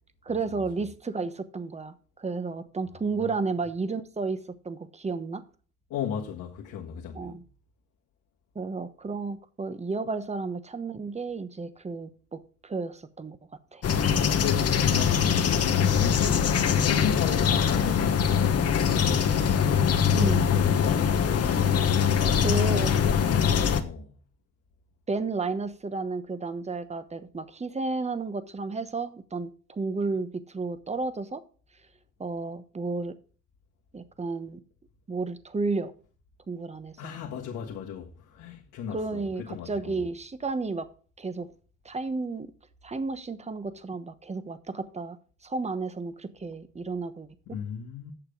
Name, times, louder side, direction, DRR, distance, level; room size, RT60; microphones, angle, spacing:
voice 1, 0.2-5.4 7.1-7.4 8.5-13.4 13.7-13.8 16.2-16.4 20.1-20.5 22.4-23.0 25.1-31.4 32.2-33.2 33.9-34.6 35.1-35.9 36.5-37.0 38.9-40.9 41.2-41.5 41.8-42.5 42.8-45.2 45.4-47.6, right 3 dB, 20° right, 1.0 m, -32 dB
voice 2, 5.9-7.4 14.3-19.5 20.0-21.7 22.0-22.4 23.0-24.2 37.0-40.0 47.5-48.1, left 8 dB, 90° left, 1.6 m, -36 dB
sound 1, 13.8-23.8, left 7 dB, 55° left, 1.2 m, -23 dB
8.8 x 6.7 x 5.1 m
cardioid pair, 90°, 30 cm